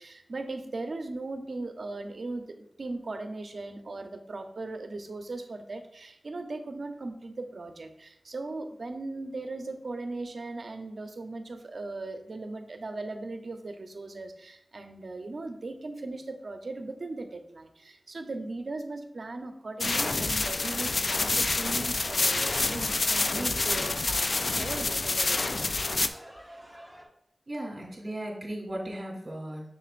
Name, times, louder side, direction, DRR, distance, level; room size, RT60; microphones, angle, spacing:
voice 1, 0.0-24.3 24.6-25.7 26.6-26.7, right 2 dB, 70° right, 6 dB, 0.7 m, -38 dB
sound 1, 19.8-26.1, left 3 dB, 55° left, 0.4 m, -27 dB
sound 2, 21.5-27.1, equal, ahead, 1.4 m, -48 dB
voice 2, 27.5-29.7, right 1 dB, 45° right, -2 dB, 2.4 m, -36 dB
6.9 x 6.7 x 2.5 m, 0.72 s
wide cardioid pair, 70°, 0 cm